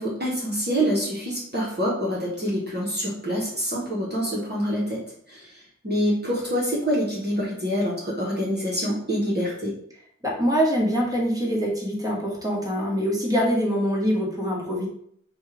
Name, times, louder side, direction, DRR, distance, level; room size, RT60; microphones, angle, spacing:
voice 1, 0.0-5.0 5.3-9.7, equal, 35° right, -5 dB, 1.3 m, -26 dB
voice 2, 10.2-14.9, equal, 10° right, -3 dB, 1.5 m, -24 dB
5.2 x 2.5 x 3.3 m, 0.67 s
wide cardioid pair, 50°, 29 cm